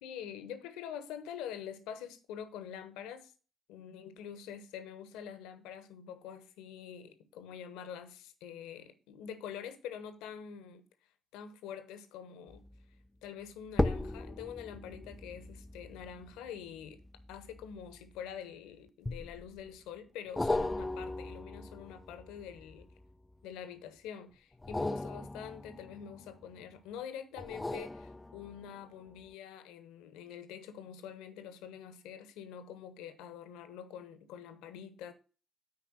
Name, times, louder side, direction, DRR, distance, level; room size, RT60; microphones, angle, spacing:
voice 1, 0.0-3.3 3.7-10.8 11.3-12.6 13.2-17.0 17.3-22.9 23.4-35.1, left 8 dB, 70° left, 1.1 m, -46 dB
sound 1, 12.5-12.8 13.7-18.4 19.1-19.7 20.4-23.3 24.5-26.6 27.4-28.8 29.3-29.4, left 2 dB, 15° left, 0.5 m, -38 dB
8.9 x 4.8 x 7.4 m
figure-of-eight pair, 40°, 0 cm